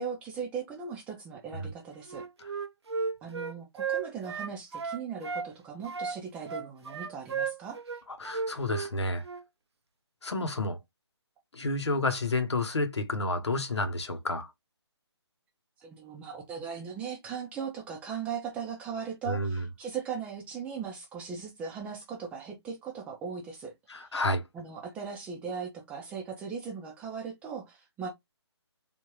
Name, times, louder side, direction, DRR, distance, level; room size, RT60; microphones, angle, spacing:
voice 1, 0.0-2.2 3.2-7.8 15.8-23.7 24.5-28.1, right 6 dB, 10° right, 0.6 m, -38 dB
Wind instrument woodwind instrument, 2.1-5.5 5.8-8.9 9.2-9.4, right 5 dB, 70° right, 0.6 m, -34 dB
voice 2, 8.1-9.2 10.2-10.8 11.5-14.5 19.3-19.6 23.9-24.5, left 2 dB, 70° left, 1.1 m, -30 dB
3.4 x 2.7 x 3.1 m
figure-of-eight pair, 150°, 15 cm